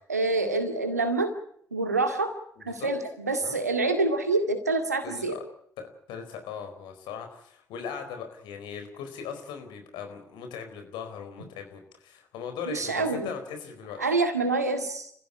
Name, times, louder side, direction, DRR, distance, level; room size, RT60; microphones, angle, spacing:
voice 1, 0.1-1.3 1.7-2.3 2.6-5.4 12.7-13.3 14.0-15.1, right 3 dB, 90° right, 7 dB, 2.1 m, -26 dB
voice 2, 2.6-2.9 3.4-3.6 5.0-5.4 5.8-14.0, left 7 dB, 65° left, 6 dB, 4.4 m, -39 dB
29.0 x 15.5 x 8.2 m, 0.67 s
figure-of-eight pair, 45°, 8 cm